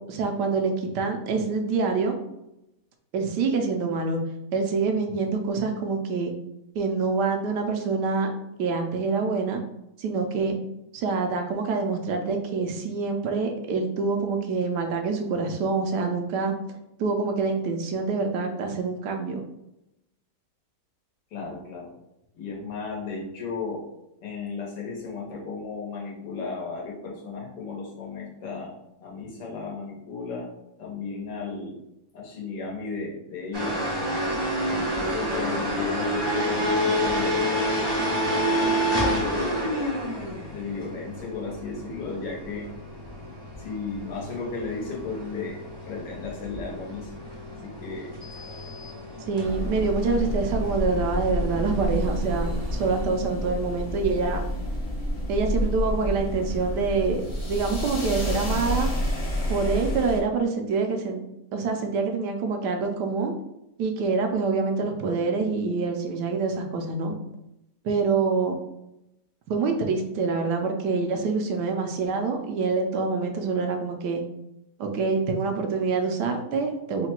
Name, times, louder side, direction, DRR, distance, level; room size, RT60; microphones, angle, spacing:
voice 1, 0.1-2.2 3.1-4.2 4.5-6.3 6.7-8.3 8.6-9.6 10.0-10.6 10.9-16.5 17.0-19.4 49.3-54.4 55.3-58.9 59.5-61.2 61.5-63.3 63.8-67.2 67.8-68.6 69.5-74.2 74.8-77.1, right 4 dB, 80° right, 4 dB, 1.2 m, -26 dB
voice 2, 21.3-21.9 22.3-23.9 24.2-28.8 29.0-30.5 30.8-31.8 32.1-33.8 34.7-37.5 38.4-39.8 40.5-42.7 43.6-47.1 47.6-48.2, left 4 dB, 85° left, -2 dB, 1.7 m, -35 dB
sound 1, 33.5-53.0, equal, 20° right, 0.7 m, -29 dB
sound 2, 49.4-60.2, equal, 30° left, 0.6 m, -29 dB
3.8 x 2.2 x 4.3 m, 0.87 s
omnidirectional pair, 1.8 m